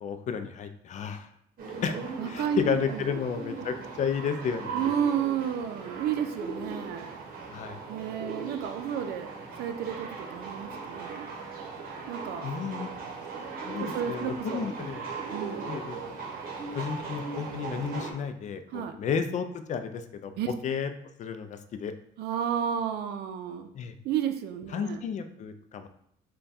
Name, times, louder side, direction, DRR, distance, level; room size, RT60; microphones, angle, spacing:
voice 1, 0.0-1.3 1.8-5.0 7.5-7.8 12.4-12.9 13.6-15.1 15.7-16.0 16.7-20.9 21.2-21.9 23.7-23.9 24.7-25.9, left 6 dB, 45° left, 9 dB, 0.4 m, -32 dB
sound 1, 1.6-18.1, right 4 dB, 60° right, 0.9 m, -38 dB
voice 2, 2.2-3.0 4.7-7.2 7.9-9.3 9.6-11.3 12.1-12.5 13.8-14.7 15.3-15.8 18.7-19.0 20.4-20.5 22.2-23.7 24.0-25.0, right 8 dB, 75° right, 8 dB, 0.5 m, -32 dB
3.4 x 2.2 x 4.0 m, 0.71 s
cardioid pair, 110°, 17 cm